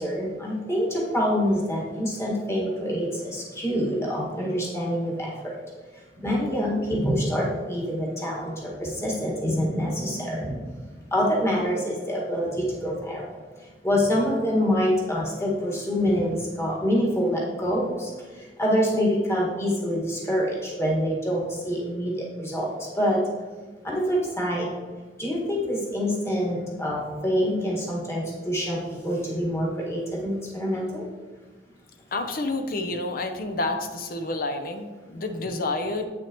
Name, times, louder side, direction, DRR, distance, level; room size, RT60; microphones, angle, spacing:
voice 1, 0.0-5.6 6.2-10.6 11.1-13.3 13.8-18.1 18.6-23.2 23.8-24.7 25.2-31.0, equal, 15° left, -4 dB, 1.7 m, -26 dB
voice 2, 32.1-36.0, left 2 dB, 55° left, 6 dB, 0.7 m, -29 dB
8.6 x 6.2 x 3.0 m, 1.3 s
head